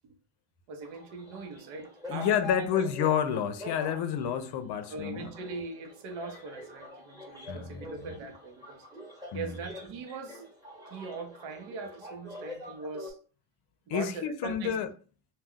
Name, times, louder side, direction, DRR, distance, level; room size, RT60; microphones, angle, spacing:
voice 1, 0.7-2.7 4.9-8.9 9.3-10.4 10.9-13.2 13.9-14.7, right 4 dB, 85° right, 0.8 m, -41 dB
sound 1, 0.8-13.1, left 2 dB, 10° right, 0.9 m, -45 dB
voice 2, 2.1-5.3 7.5-8.1 9.3-9.6 13.9-14.9, left 8 dB, 55° left, 0.5 m, -30 dB
2.2 x 2.2 x 3.5 m
cardioid pair, 130°, 48 cm